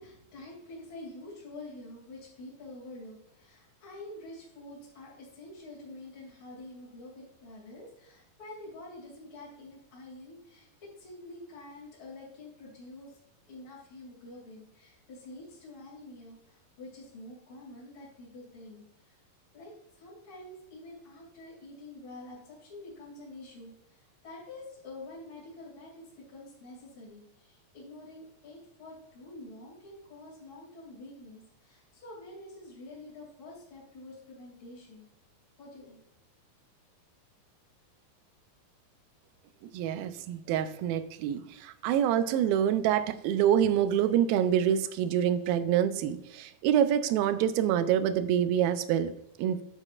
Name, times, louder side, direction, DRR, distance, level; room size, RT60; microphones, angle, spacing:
voice 1, 0.0-13.2 13.5-19.2 19.5-35.1 35.6-36.0, left 2 dB, 35° left, -7 dB, 2.8 m, -47 dB
voice 2, 39.6-49.1 49.4-49.6, right 10 dB, 80° right, 11 dB, 2.4 m, -26 dB
10.5 x 7.2 x 2.4 m, 0.78 s
omnidirectional pair, 4.4 m